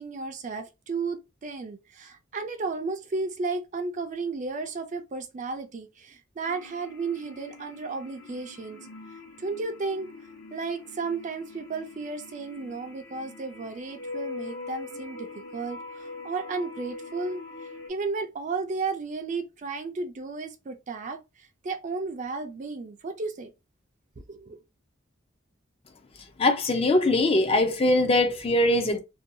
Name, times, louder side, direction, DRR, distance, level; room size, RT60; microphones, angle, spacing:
voice 1, 0.0-8.8 9.4-10.1 10.5-17.4 17.9-23.5 24.2-24.6, right 4 dB, 40° right, 0.4 m, -33 dB
sound 1, 6.4-17.9, left 3 dB, 65° left, 0.9 m, -43 dB
voice 2, 26.4-29.0, left 1 dB, 30° left, 0.5 m, -22 dB
2.7 x 2.2 x 2.6 m
head